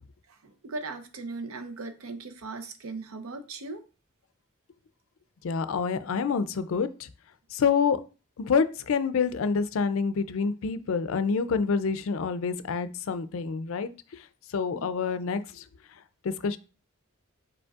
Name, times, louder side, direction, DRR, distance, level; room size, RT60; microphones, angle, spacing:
voice 1, 0.3-3.8 14.7-14.9, right 3 dB, 85° right, 8 dB, 0.7 m, -38 dB
voice 2, 5.4-7.1 7.5-8.0 8.4-13.9 14.5-15.6 16.2-16.6, left 5 dB, 70° left, 12 dB, 0.4 m, -27 dB
5.1 x 4.3 x 2.4 m, 0.34 s
head